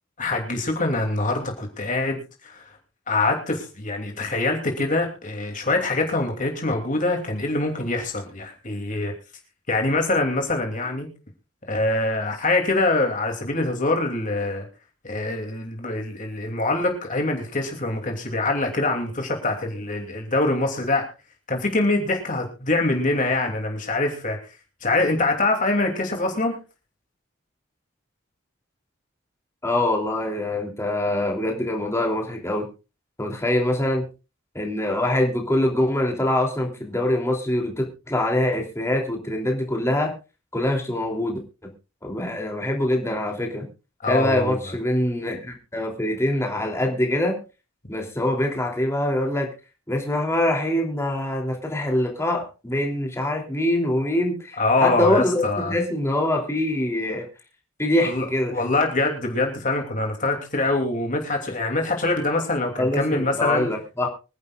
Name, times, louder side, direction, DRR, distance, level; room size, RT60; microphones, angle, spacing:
voice 1, 0.2-2.7 3.1-9.1 9.7-11.1 11.7-14.7 15.0-21.0 21.5-24.4 24.8-26.6 44.0-44.6 54.6-55.7 58.1-58.2 58.5-63.7, left 2 dB, 40° left, 3 dB, 2.9 m, -24 dB
voice 2, 29.6-32.7 33.2-34.0 34.5-40.1 40.5-41.4 42.0-43.7 44.0-47.4 47.9-49.5 49.9-57.3 57.8-58.5 62.8-64.1, left 1 dB, 15° left, 1 dB, 3.2 m, -24 dB
25.0 x 11.0 x 2.5 m, 0.31 s
head